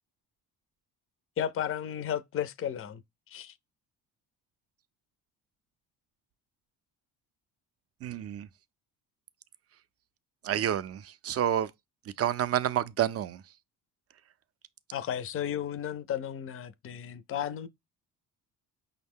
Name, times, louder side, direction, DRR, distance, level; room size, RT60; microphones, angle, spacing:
voice 1, 1.4-3.0 3.3-3.5 14.9-17.7, left 9 dB, 35° left, 0.4 m, -33 dB
voice 2, 8.0-8.5 10.4-11.7 12.2-13.4, right 11 dB, 40° right, 0.4 m, -29 dB
5.5 x 2.1 x 3.5 m
cardioid pair, 80°, 40 cm